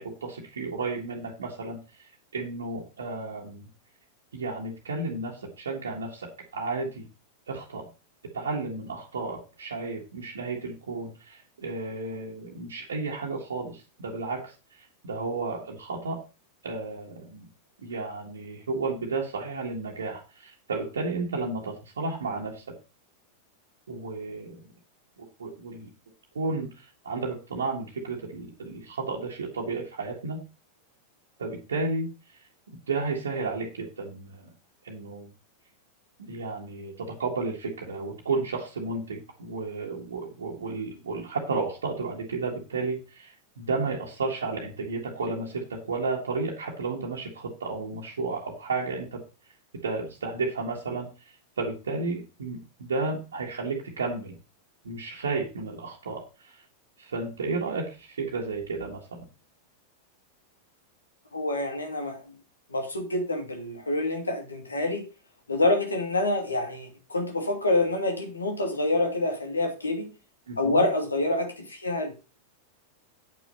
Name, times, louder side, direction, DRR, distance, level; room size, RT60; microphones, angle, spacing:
voice 1, 0.0-1.8 2.3-3.7 4.3-7.1 7.5-7.9 8.2-14.5 15.0-16.2 16.6-17.5 17.8-22.7 23.9-24.6 25.2-25.9 26.3-30.4 31.4-32.1 32.7-34.5 34.8-35.3 36.2-49.2 49.8-54.4 54.8-56.6 57.0-59.3 70.5-70.8, right 3 dB, 70° right, -2 dB, 1.8 m, -32 dB
voice 2, 61.3-62.2 62.7-65.0 65.5-70.1 70.6-72.1, left 2 dB, 80° left, 3 dB, 2.5 m, -27 dB
8.9 x 6.1 x 5.5 m, 0.31 s
figure-of-eight pair, 90°, 0 cm